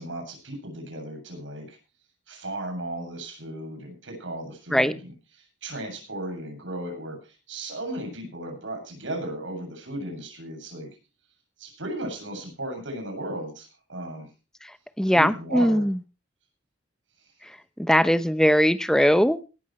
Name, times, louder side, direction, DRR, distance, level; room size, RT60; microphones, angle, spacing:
voice 1, 0.0-1.8 2.3-10.9 11.6-14.3 15.1-15.9, right 1 dB, 90° right, 4 dB, 7.6 m, -35 dB
voice 2, 15.0-16.0 17.8-19.4, equal, 5° left, 11 dB, 0.8 m, -20 dB
18.5 x 13.5 x 3.2 m, 0.32 s
head